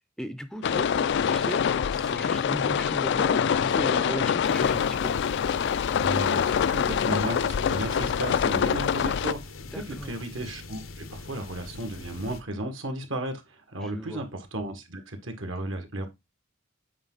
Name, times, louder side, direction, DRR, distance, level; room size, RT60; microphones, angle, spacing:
voice 1, 0.2-5.1 9.7-10.2 13.8-14.2, equal, 5° left, 0.5 m, -37 dB
sound 1, 0.6-9.3, left 7 dB, 60° left, 0.3 m, -25 dB
sound 2, 4.4-12.4, left 3 dB, 85° left, 0.9 m, -43 dB
voice 2, 6.0-16.1, right 1 dB, 70° right, 1.8 m, -34 dB
8.7 x 4.8 x 3.9 m
head